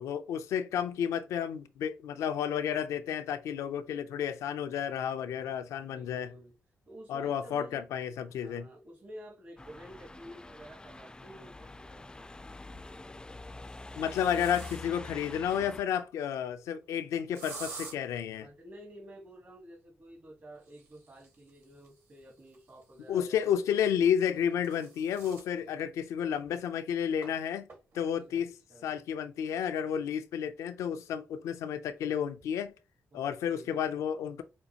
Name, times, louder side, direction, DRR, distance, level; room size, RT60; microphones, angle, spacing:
voice 1, 0.0-6.3 7.1-8.7 14.0-18.5 23.1-27.7 27.9-28.5 28.8-32.7 33.1-34.4, left 8 dB, 80° left, 0.4 m, -31 dB
voice 2, 5.9-6.5 6.9-7.9 8.4-12.4 18.4-23.6 27.9-28.4 28.7-29.0 33.1-33.9, right 1 dB, 45° right, 1.3 m, -51 dB
sound 1, 9.6-15.8, left 2 dB, 15° left, 0.3 m, -46 dB
sound 2, 12.5-12.9 13.5-15.1 17.3-18.0 20.5-23.2 24.2-25.5 26.0-26.1 26.4-26.5 27.2-27.3 27.7-28.1, right 4 dB, 60° right, 1.8 m, -48 dB
5.1 x 2.2 x 2.8 m
supercardioid pair, 45°, 5 cm